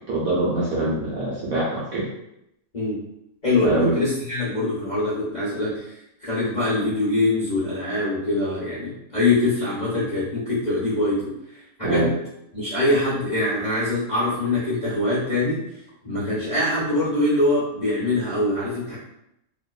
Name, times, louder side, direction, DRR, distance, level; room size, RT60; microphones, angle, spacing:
voice 1, 0.1-2.1 3.6-4.0 11.8-12.1, right 2 dB, 65° right, -6 dB, 0.9 m, -23 dB
voice 2, 3.4-12.1 12.5-19.0, left 2 dB, 35° left, -11 dB, 0.7 m, -24 dB
2.9 x 2.1 x 2.3 m, 0.82 s
omnidirectional pair, 1.9 m